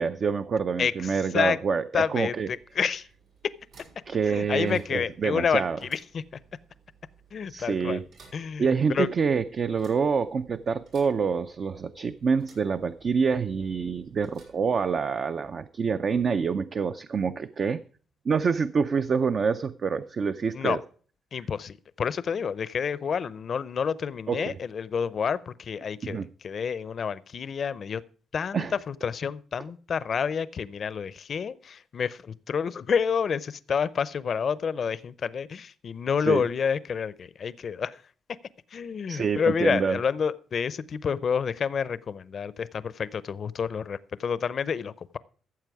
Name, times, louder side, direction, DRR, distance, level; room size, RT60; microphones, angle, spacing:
voice 1, 0.0-2.5 4.1-5.8 7.5-8.0 8.6-17.8 18.3-20.8 24.3-24.5 26.0-26.3 28.5-28.7 36.2-36.4 39.1-40.0, right 5 dB, 45° right, 10 dB, 0.5 m, -26 dB
voice 2, 0.8-1.6 1.9-3.1 4.3-6.2 7.3-8.0 8.3-9.1 20.5-20.8 21.3-28.0 28.3-38.0 38.7-45.2, left 6 dB, 50° left, 18 dB, 0.6 m, -29 dB
sound 1, 2.2-15.4, right 5 dB, 90° right, 5.3 m, -59 dB
14.5 x 7.5 x 4.7 m, 0.42 s
cardioid pair, 100°, 0 cm